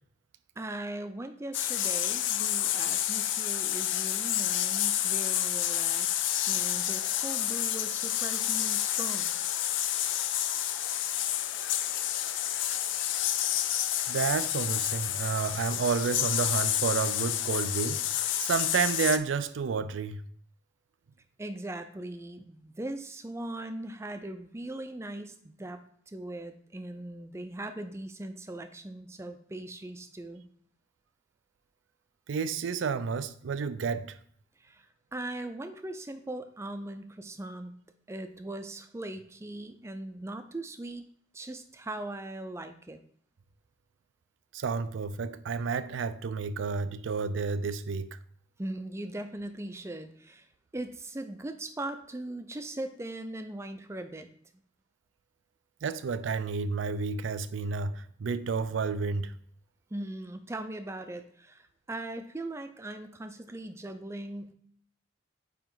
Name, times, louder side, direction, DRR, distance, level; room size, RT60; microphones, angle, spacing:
voice 1, 0.6-9.3 21.4-25.8 26.1-30.4 34.6-34.9 35.1-37.7 38.1-41.0 41.3-43.0 48.6-50.4 50.7-54.3 59.9-64.5, right 1 dB, 15° right, 0.4 m, -39 dB
sound 1, 1.5-19.2, left 12 dB, 85° left, 0.4 m, -29 dB
voice 2, 14.1-20.2 32.3-34.1 44.5-48.1 55.8-59.3, right 5 dB, 90° right, 0.4 m, -30 dB
8.8 x 3.0 x 3.9 m
head